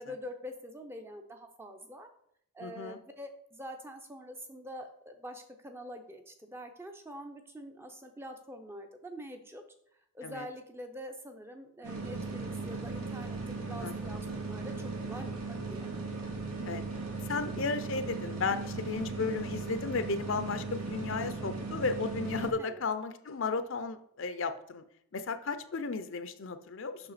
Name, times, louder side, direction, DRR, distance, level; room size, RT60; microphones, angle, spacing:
voice 1, 0.0-2.1 2.5-9.6 10.1-15.9 22.6-22.8, equal, 10° right, 5 dB, 0.5 m, -45 dB
voice 2, 2.6-3.0 10.2-10.5 13.7-13.9 16.6-16.8 17.2-24.8 25.1-27.1, left 4 dB, 55° left, 10 dB, 0.5 m, -34 dB
sound 1, 11.8-22.5, right 3 dB, 85° right, 1.3 m, -37 dB
5.9 x 5.6 x 4.1 m, 0.70 s
head